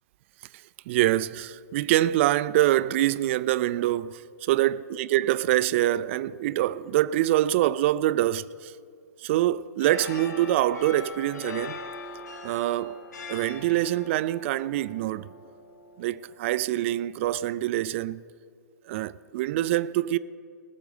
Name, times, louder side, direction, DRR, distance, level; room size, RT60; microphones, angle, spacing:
voice 1, 0.9-8.7 9.2-11.8 12.4-13.0 13.3-15.3 16.0-18.2 18.9-20.2, right 14 dB, 45° right, 0.4 m, -25 dB
sound 1, 9.8-17.1, left 4 dB, 70° left, 1.1 m, -42 dB
19.0 x 6.9 x 6.6 m
figure-of-eight pair, 120°, 10 cm